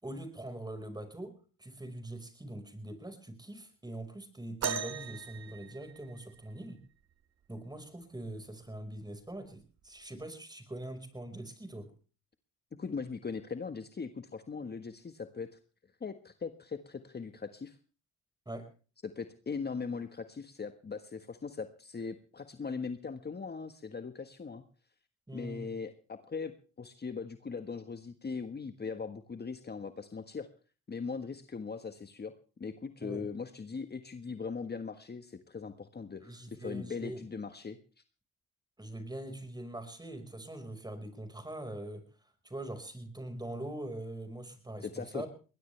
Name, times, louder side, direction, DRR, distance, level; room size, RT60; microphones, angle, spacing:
voice 1, 0.0-6.8 7.5-11.9 18.4-18.7 25.3-25.7 33.0-33.3 36.2-37.2 38.8-42.0 42.4-45.3, right 1 dB, 15° right, 8 dB, 5.1 m, -43 dB
sound 1, 4.6-6.5 8.2-8.3 9.1-9.3 10.2-10.3, right 7 dB, 55° right, 1.6 m, -38 dB
voice 2, 12.8-15.5 16.0-17.8 19.0-24.6 25.3-26.5 26.8-30.5 30.9-32.3 32.6-37.8 44.8-45.3, left 5 dB, 30° left, 8 dB, 1.5 m, -40 dB
21.0 x 20.0 x 3.4 m, 0.37 s
supercardioid pair, 65°, 31 cm